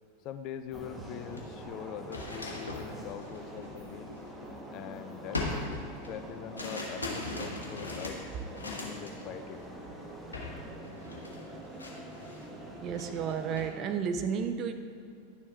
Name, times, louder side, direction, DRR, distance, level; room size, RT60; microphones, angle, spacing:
voice 1, 0.2-4.1 4.7-8.2 8.6-9.6, left 9 dB, 40° left, 10 dB, 0.3 m, -43 dB
sound 1, 0.7-0.8 1.2-4.8 5.3-9.2 9.5-9.8 10.3-10.6 10.8-12.5 12.9-13.7, left 2 dB, 75° left, 1.0 m, -40 dB
sound 2, 0.7-13.7, right 1 dB, 10° right, 0.8 m, -45 dB
voice 2, 12.8-14.7, right 7 dB, 35° right, 8 dB, 0.5 m, -32 dB
10.5 x 6.8 x 2.4 m, 2.3 s
figure-of-eight pair, 90°, 0 cm